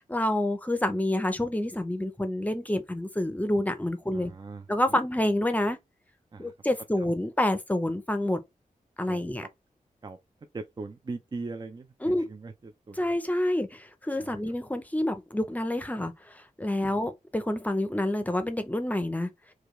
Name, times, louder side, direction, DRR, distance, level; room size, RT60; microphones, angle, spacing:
voice 1, 0.0-4.3 4.7-5.8 6.4-8.4 9.0-9.5 12.0-12.3 13.0-19.3, left 1 dB, 10° left, 0.6 m, -28 dB
voice 2, 4.1-4.7 6.3-6.5 9.1-9.5 10.0-10.2 10.5-13.0 14.2-14.4 16.9-17.0, right 3 dB, 30° right, 0.4 m, -40 dB
4.8 x 2.3 x 3.1 m
wide cardioid pair, 120°, 14 cm